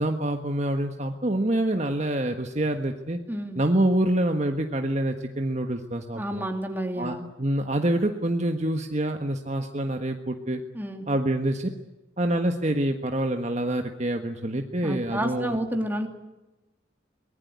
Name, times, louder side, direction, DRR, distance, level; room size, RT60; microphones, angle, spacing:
voice 1, 0.0-3.2 3.5-6.5 7.0-10.6 11.1-11.7 12.2-15.6, right 1 dB, 35° right, 5 dB, 1.4 m, -26 dB
voice 2, 3.3-3.6 6.2-7.3 10.7-11.1 14.8-16.1, right 1 dB, 10° right, 4 dB, 2.8 m, -30 dB
24.0 x 20.0 x 9.6 m, 1.0 s
head